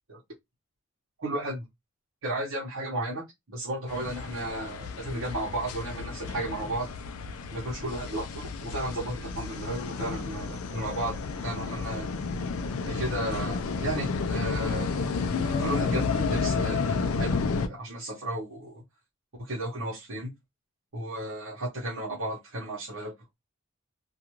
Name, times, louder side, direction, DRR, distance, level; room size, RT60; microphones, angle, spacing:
voice 1, 1.2-1.6 2.2-6.9 7.5-12.1 12.8-14.9 15.4-18.8 19.4-20.3 20.9-23.1, right 1 dB, 65° right, 0.9 m, -34 dB
sound 1, 3.9-17.7, left 4 dB, 85° left, 0.4 m, -31 dB
2.4 x 2.3 x 2.9 m
head